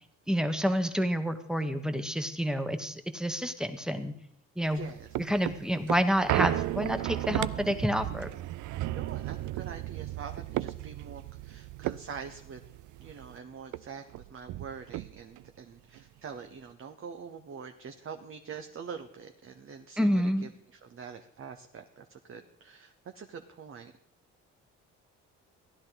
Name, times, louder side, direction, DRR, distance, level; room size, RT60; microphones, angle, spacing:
voice 1, 0.3-4.1 4.6-4.9 5.2-8.3 20.0-20.5, equal, ahead, 8 dB, 1.2 m, -29 dB
voice 2, 4.6-5.1 8.9-12.6 13.0-23.9, right 6 dB, 45° right, 6 dB, 1.0 m, -45 dB
sound 1, 4.7-13.4 13.7-13.8 14.1-15.5 15.9-16.0, right 16 dB, 75° right, 0.5 m, -34 dB
15.5 x 11.0 x 4.0 m, 0.73 s
cardioid pair, 90°, 30 cm